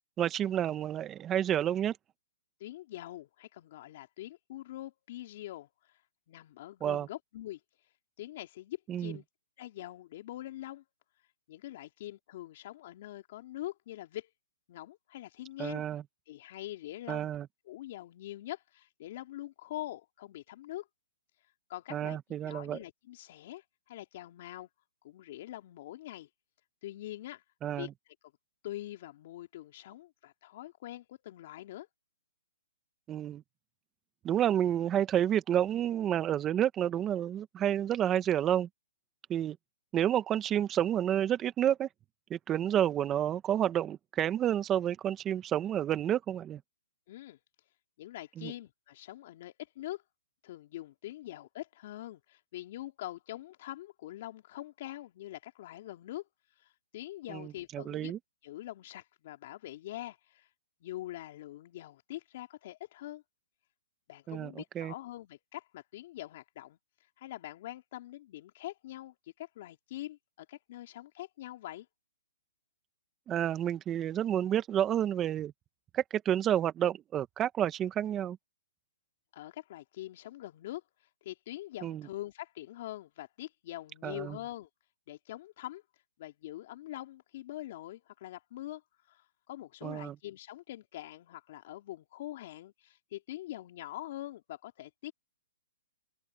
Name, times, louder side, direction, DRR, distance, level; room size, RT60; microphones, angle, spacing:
voice 1, 0.2-2.0 6.8-7.1 8.9-9.2 15.6-16.0 17.1-17.5 21.9-22.8 27.6-27.9 33.1-33.4 34.2-38.7 39.3-39.6 39.9-41.9 42.3-46.6 48.4-48.5 57.3-58.2 64.3-64.9 73.3-75.5 75.9-78.4 81.8-82.0 84.0-84.4 89.8-90.1, right 10 dB, 20° right, 1.4 m, -30 dB
voice 2, 2.6-6.0 6.3-7.6 8.2-9.2 9.6-10.8 11.5-14.3 14.7-15.8 16.3-17.3 17.6-20.9 21.7-22.2 22.4-24.7 25.0-26.3 26.8-27.4 27.8-28.1 28.6-31.9 47.1-47.4 48.0-50.0 50.4-56.2 56.6-58.1 58.4-60.5 60.8-63.2 64.1-66.8 67.2-71.9 79.3-80.8 81.2-84.7 85.1-85.8 86.2-88.8 89.1-95.1, left 14 dB, 50° left, 2.7 m, -44 dB
open air
hypercardioid pair, 145°, 0 cm